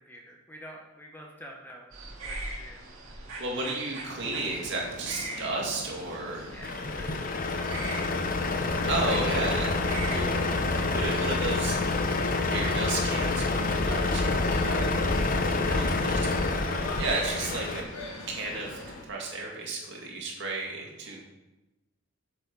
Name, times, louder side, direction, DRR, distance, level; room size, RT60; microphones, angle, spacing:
voice 1, 0.0-1.9 2.2-3.2 3.5-3.7 6.5-7.9 8.6-8.9 15.6-16.7 21.0-21.3, equal, 10° left, 0 dB, 0.9 m, -48 dB
sound 1, 1.9-18.9, right 2 dB, 75° right, 2.2 m, -44 dB
voice 2, 3.4-6.5 8.9-9.8 10.1-10.3 10.8-11.8 12.5-14.9 15.5-16.3 17.0-17.8 18.3-21.3, right 2 dB, 55° right, -2 dB, 2.3 m, -33 dB
sound 2, 4.1-19.1, left 2 dB, 70° left, 1.0 m, -44 dB
Truck, 6.6-17.8, left 3 dB, 40° left, 0.7 m, -27 dB
7.6 x 7.0 x 5.3 m, 1.0 s
head